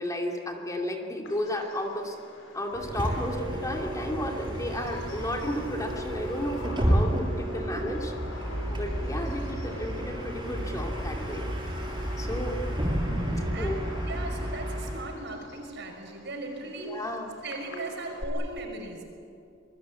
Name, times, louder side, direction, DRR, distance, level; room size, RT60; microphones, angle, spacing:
voice 1, 0.0-2.2 2.5-8.1 8.7-11.5 12.2-12.6 13.6-13.8 16.9-17.4, left 1 dB, 15° left, 2 dB, 2.7 m, -33 dB
Bird vocalization bird call bird song, 1.2-18.2, left 2 dB, 70° left, 4.6 m, -49 dB
Bus, 2.7-15.2, equal, 20° right, 7.7 m, -31 dB
voice 2, 13.3-19.0, right 2 dB, 60° right, 3 dB, 5.7 m, -38 dB
27.0 x 21.5 x 8.4 m, 2.5 s
head